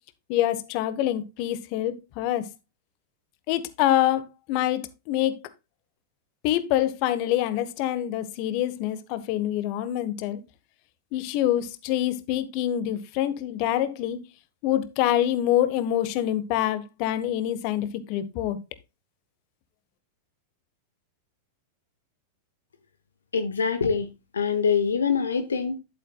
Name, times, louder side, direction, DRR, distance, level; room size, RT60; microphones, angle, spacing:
voice 1, 0.3-2.5 3.5-4.2 4.5-5.3 6.4-10.4 11.1-14.2 14.6-18.6, left 12 dB, 45° left, 1.4 m, -26 dB
voice 2, 23.3-24.1 24.3-25.8, left 6 dB, 75° left, 0.9 m, -24 dB
11.0 x 8.3 x 2.4 m
figure-of-eight pair, 95°, 0 cm